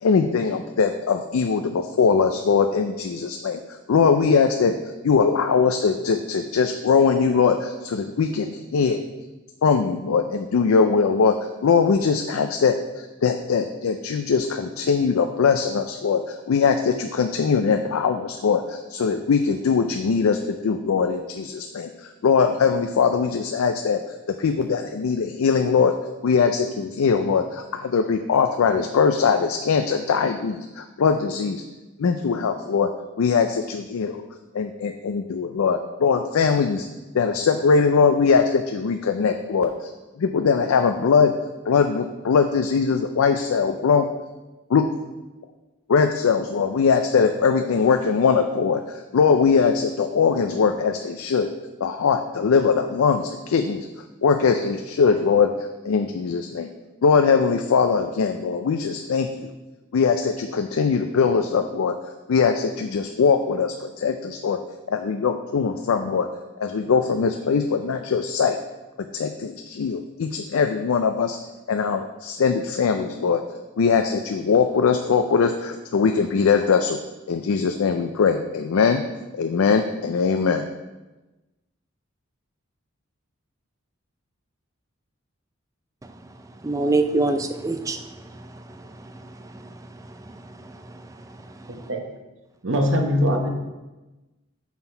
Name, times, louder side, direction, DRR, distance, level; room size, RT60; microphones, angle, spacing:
voice 1, 0.0-4.8 5.0-9.0 9.6-25.9 26.2-31.6 32.0-32.9 33.2-34.2 34.5-36.9 37.1-39.9 40.2-41.3 41.7-44.1 44.7-44.8 45.9-51.5 51.8-53.9 54.2-56.7 57.0-59.5 59.9-62.0 62.3-64.6 64.9-66.3 66.6-68.6 69.0-71.4 71.7-73.4 73.8-77.0 77.3-79.0 79.3-80.7, left 5 dB, 85° left, 0.4 m, -21 dB
voice 2, 86.6-91.8, right 2 dB, 15° right, 0.3 m, -28 dB
voice 3, 92.6-93.5, equal, 65° right, 1.0 m, -21 dB
6.0 x 5.6 x 4.5 m
head